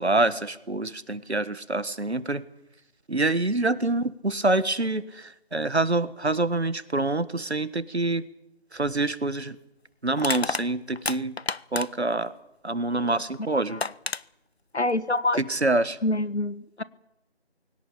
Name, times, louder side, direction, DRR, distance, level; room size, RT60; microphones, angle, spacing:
voice 1, 0.0-2.4 3.1-8.2 8.7-9.6 10.0-11.4 11.7-12.3 12.6-13.8 15.4-16.0, right 2 dB, 80° right, 15 dB, 1.6 m, -26 dB
Crushing, 8.8-9.0 10.2-12.1 13.3-13.4 13.8-14.2, left 4 dB, 70° left, 0.7 m, -30 dB
voice 2, 14.7-15.4 16.0-16.8, left 2 dB, 90° left, 16 dB, 1.5 m, -26 dB
21.5 x 18.0 x 8.6 m, 0.89 s
figure-of-eight pair, 175°, 33 cm